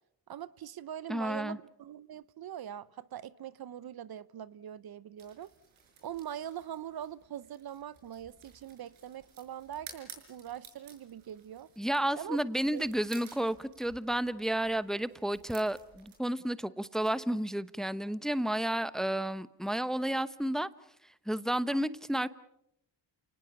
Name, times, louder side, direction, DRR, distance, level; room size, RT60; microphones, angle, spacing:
voice 1, 0.3-5.5 6.0-11.7 12.2-12.4 12.7-12.9, right 10 dB, 50° right, 0.8 m, -42 dB
voice 2, 1.1-1.6 11.8-20.7 21.0-22.3, right 1 dB, ahead, 0.9 m, -31 dB
sound 1, 5.2-16.2, right 6 dB, 80° right, 6.1 m, -55 dB
29.5 x 19.0 x 7.0 m
cardioid pair, 70°, 47 cm